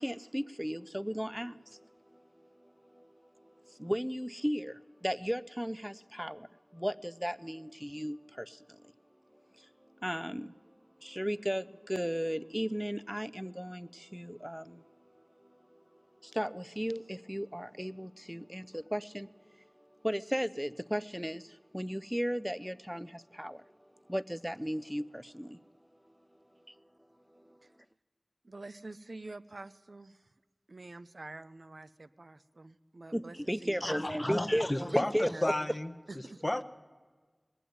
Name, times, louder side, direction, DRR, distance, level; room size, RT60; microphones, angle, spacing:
voice 1, 0.0-8.9 9.5-9.7 10.0-10.5 11.0-14.8 15.4-19.3 19.8-23.7 24.1-25.6 26.7-26.8 27.3-27.6 33.1-35.5, equal, 5° right, 0.4 m, -36 dB
voice 2, 28.4-30.3 30.7-35.7 36.1-36.4, right 2 dB, 80° right, 0.5 m, -48 dB
voice 3, 33.8-36.6, left 1 dB, 35° left, 0.7 m, -33 dB
19.5 x 8.0 x 9.3 m
wide cardioid pair, 50°, 0 cm